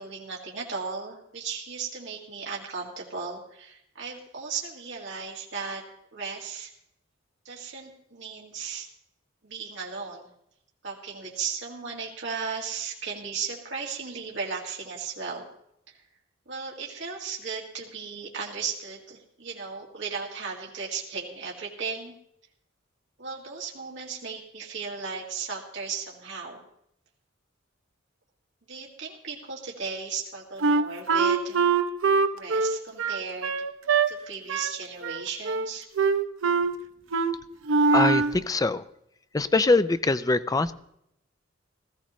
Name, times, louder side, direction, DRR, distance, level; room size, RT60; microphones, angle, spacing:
voice 1, 0.0-5.8 6.1-6.7 7.4-8.9 9.4-10.3 10.8-15.5 15.9-16.0 16.5-22.1 23.2-26.6 28.7-31.6 32.3-33.5 34.1-35.9, right 5 dB, 65° right, -3 dB, 2.1 m, -36 dB
Wind instrument woodwind instrument, 30.6-34.1 34.5-34.8 35.0-35.7 36.0-36.7 37.1-37.3 37.7-38.4, right 4 dB, 90° right, 0.7 m, -23 dB
voice 2, 37.9-38.8 39.3-40.7, left 3 dB, 20° left, 13 dB, 0.4 m, -23 dB
17.5 x 14.5 x 3.1 m, 0.76 s
head